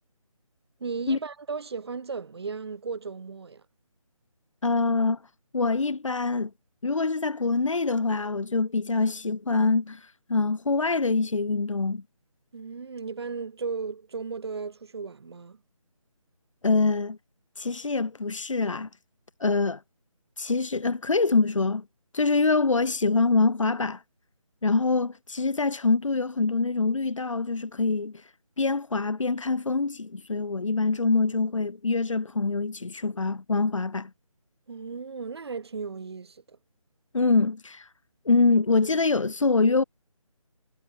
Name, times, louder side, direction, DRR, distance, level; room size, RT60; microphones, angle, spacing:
voice 1, 0.8-3.6 12.5-15.6 34.7-36.6, right 5 dB, 45° right, 7.1 m, -35 dB
voice 2, 4.6-5.2 5.5-6.5 6.8-12.0 16.6-17.2 17.6-18.9 19.4-19.8 20.4-21.8 22.1-24.0 24.6-28.2 28.6-34.1 37.1-37.9 38.2-39.8, left 3 dB, 60° left, 4.7 m, -25 dB
figure-of-eight pair, 160°, 18 cm